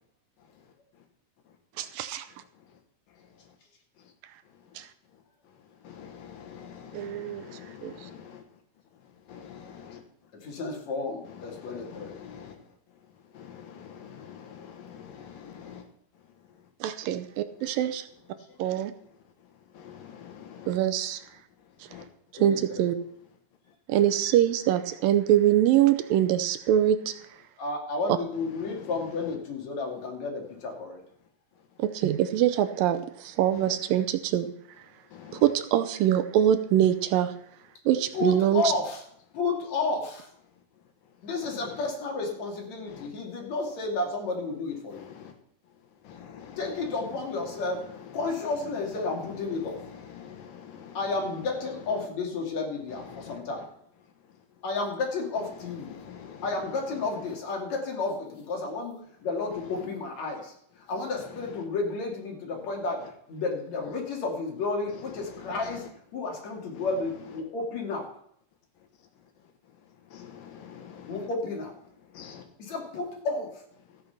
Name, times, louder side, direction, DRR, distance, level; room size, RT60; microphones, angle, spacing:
voice 1, 0.4-1.0 1.5-1.9 2.5-2.8 3.1-3.6 4.0-4.1 4.5-5.2 5.5-8.4 8.9-10.0 11.2-15.8 16.1-16.7 19.4-20.8 21.6-22.1 28.5-29.4 33.5-33.7 35.1-35.5 41.0-41.2 41.4-41.9 42.9-43.1 44.9-45.3 46.0-51.1 51.6-51.9 52.9-53.7 54.3-54.4 55.4-57.2 59.5-59.8 61.1-61.6 63.0-63.1 64.8-65.9 69.2-71.3 72.0-72.5 73.9-74.0, left 8 dB, 70° left, 5 dB, 3.0 m, -47 dB
voice 2, 1.8-2.3 4.8-4.9 6.9-7.4 7.8-7.9 16.8-18.1 18.6-18.9 20.7-21.2 22.3-23.0 23.9-27.1 31.8-34.5 35.4-37.3 37.9-38.6, right 11 dB, 80° right, 11 dB, 2.4 m, -24 dB
voice 3, 10.3-12.1 18.3-18.5 22.4-22.9 27.6-31.0 38.1-39.0 39.3-40.3 41.2-45.0 46.6-47.9 48.1-49.8 50.9-53.7 54.6-56.0 56.4-59.0 59.2-60.5 60.9-65.9 66.1-68.1 71.1-71.7 72.6-73.7, left 3 dB, 55° left, 1 dB, 3.5 m, -32 dB
14.0 x 8.7 x 5.8 m, 0.66 s
omnidirectional pair, 4.1 m